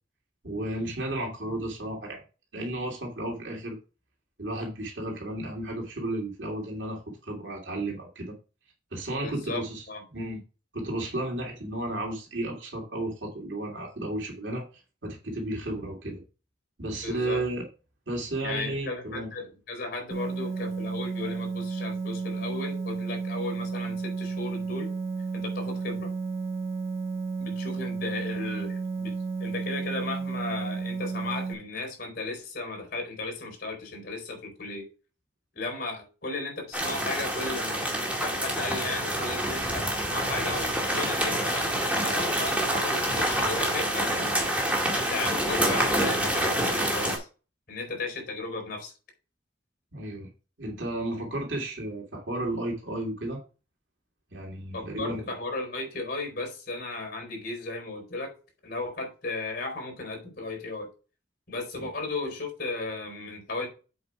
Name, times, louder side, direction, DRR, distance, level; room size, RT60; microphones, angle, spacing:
voice 1, 0.4-2.2 2.5-3.8 4.4-8.3 8.9-9.9 10.1-10.4 10.7-14.6 15.0-16.2 16.8-17.7 18.1-19.3 49.9-50.3 50.6-53.4 54.3-55.2 61.7-61.9, right 1 dB, 75° right, 2.7 m, -33 dB
voice 2, 9.2-10.0 17.0-17.4 18.4-24.9 25.3-26.1 27.4-29.1 29.4-34.9 35.5-37.9 38.2-44.3 44.9-47.3 47.7-48.9 54.7-58.3 58.6-60.9 61.5-63.7, left 3 dB, 50° left, 4.4 m, -35 dB
sound 1, 20.1-31.5, right 4 dB, 35° right, 1.7 m, -32 dB
sound 2, 36.7-47.2, right 1 dB, 5° right, 2.0 m, -27 dB
8.0 x 5.2 x 4.8 m
head